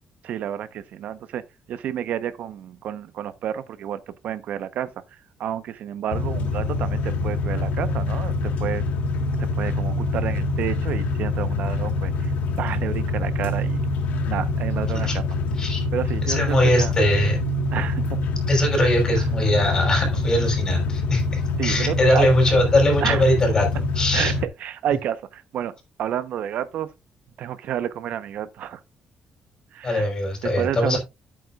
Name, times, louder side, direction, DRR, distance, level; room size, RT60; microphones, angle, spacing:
voice 1, 0.2-1.4 1.7-4.9 5.4-8.8 9.6-13.8 14.3-15.2 15.9-16.9 17.7-18.2 19.2-19.3 21.6-22.3 23.0-23.2 24.1-25.7 26.0-26.9 27.4-28.8 29.7-30.1 30.4-31.0, right 10 dB, 65° right, 0.9 m, -30 dB
sound 1, 6.1-24.5, left 3 dB, 80° left, 1.6 m, -25 dB
voice 2, 16.2-17.4 18.5-24.3 29.8-31.0, left 1 dB, 25° left, 5.6 m, -21 dB
11.0 x 8.8 x 2.5 m
cardioid pair, 160°, 3 cm